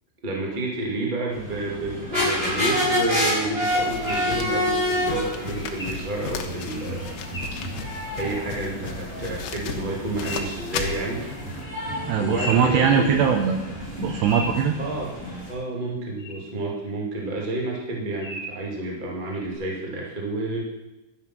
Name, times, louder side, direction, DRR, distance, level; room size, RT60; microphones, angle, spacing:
voice 1, 0.2-7.1 7.8-7.9 8.2-11.3 12.2-13.2 14.8-15.1 15.5-20.7, right 2 dB, 35° right, -2 dB, 0.7 m, -30 dB
sound 1, 1.3-15.5, left 1 dB, 10° right, 5.8 m, -29 dB
sound 2, 2.4-8.3 10.2-11.0 12.0-13.4 13.8-15.5 16.2-16.3 16.8-16.9 18.2-18.6 19.3-19.5, equal, 5° left, 2.7 m, -39 dB
sound 3, 3.7-11.6, left 7 dB, 80° left, 3.2 m, -36 dB
voice 2, 12.1-13.6 14.0-14.8, right 7 dB, 80° right, 5 dB, 2.5 m, -21 dB
12.0 x 9.1 x 6.1 m, 0.99 s
omnidirectional pair, 5.7 m